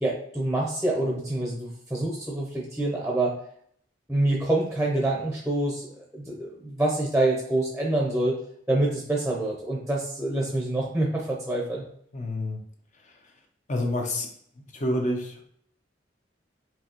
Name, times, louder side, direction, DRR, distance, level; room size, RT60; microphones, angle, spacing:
voice 1, 0.0-3.3 4.1-8.4 8.7-11.8, right 2 dB, 5° right, -3 dB, 0.7 m, -26 dB
voice 2, 12.1-12.6 13.7-14.3 14.7-15.4, left 1 dB, 40° left, 2 dB, 0.6 m, -28 dB
4.6 x 2.8 x 2.9 m, 0.64 s
head